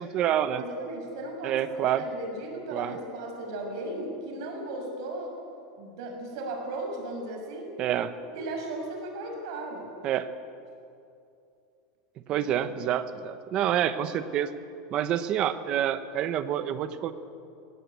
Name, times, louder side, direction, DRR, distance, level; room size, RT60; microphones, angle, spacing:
voice 1, 0.0-0.6 1.4-2.0 2.7-2.9 7.8-8.1 10.0-10.3 12.3-14.5 14.9-17.1, right 10 dB, 30° right, 12 dB, 0.9 m, -27 dB
voice 2, 0.5-5.3 5.8-7.7 8.3-9.9 12.3-12.5 12.8-12.9, right 2 dB, 60° right, 2 dB, 6.0 m, -36 dB
22.0 x 17.5 x 8.4 m, 2.6 s
supercardioid pair, 175°, 3 cm